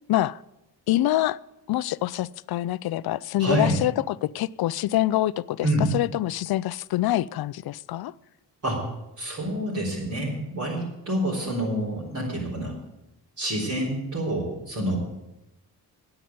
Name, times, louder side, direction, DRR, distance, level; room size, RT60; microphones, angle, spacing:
voice 1, 0.9-1.4 1.7-8.1, left 14 dB, 65° left, 0.5 m, -25 dB
voice 2, 3.4-3.8 5.6-5.9 8.6-8.8 9.2-12.7 13.4-15.0, right 1 dB, 45° right, 4.4 m, -27 dB
10.0 x 8.9 x 9.3 m
cardioid pair, 110°, 40 cm